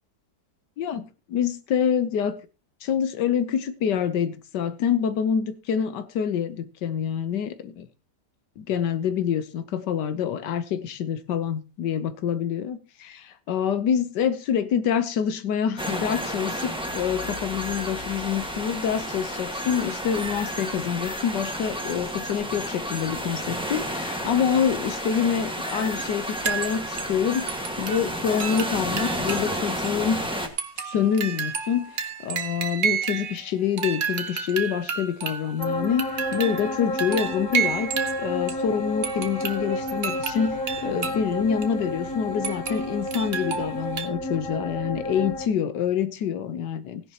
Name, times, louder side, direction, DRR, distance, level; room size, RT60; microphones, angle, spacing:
voice 1, 0.8-2.4 2.8-7.9 8.6-30.2 30.9-37.9 38.2-47.0, left 8 dB, 85° left, 1.5 m, -26 dB
sound 1, 15.8-30.5, equal, 5° right, 1.5 m, -31 dB
sound 2, 26.4-27.1 27.5-29.6 29.8-29.9 30.6-33.5 33.8-38.7 39.0-41.3 41.6-41.7 42.4-44.1, right 7 dB, 50° right, 1.4 m, -31 dB
sound 3, 35.6-45.5, left 1 dB, 55° left, 1.6 m, -31 dB
16.5 x 10.5 x 2.9 m
omnidirectional pair, 1.8 m